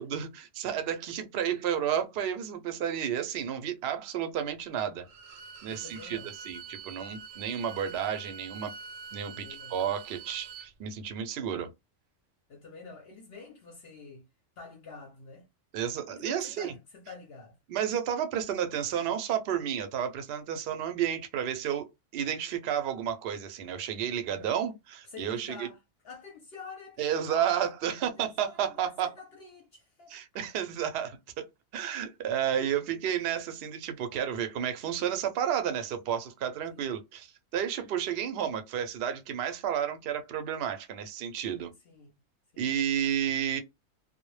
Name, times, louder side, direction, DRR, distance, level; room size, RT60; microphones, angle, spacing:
voice 1, 0.0-5.1 5.6-8.7 9.1-11.7 15.7-16.7 17.7-21.9 22.1-25.7 27.0-29.1 30.1-31.4 31.7-41.7 42.6-43.6, right 9 dB, 65° right, 0.6 m, -31 dB
Bowed string instrument, 5.0-10.7, right 6 dB, 85° right, 1.0 m, -45 dB
voice 2, 5.7-6.3 9.3-9.8 12.5-14.2 14.6-15.5 16.1-17.6 24.2-24.6 25.0-25.8 26.0-27.6 28.0-30.2 36.7-36.9 41.8-42.1 42.5-42.7, left 4 dB, 60° left, 0.7 m, -48 dB
2.1 x 2.1 x 3.0 m
omnidirectional pair, 1.3 m